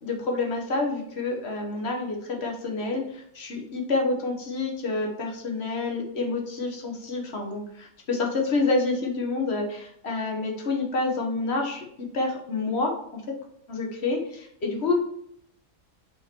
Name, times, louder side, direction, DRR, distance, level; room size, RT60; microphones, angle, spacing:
voice 1, 0.0-13.4 13.7-14.9, left 3 dB, 45° left, 1 dB, 1.4 m, -28 dB
5.5 x 4.5 x 4.5 m, 0.73 s
omnidirectional pair, 1.6 m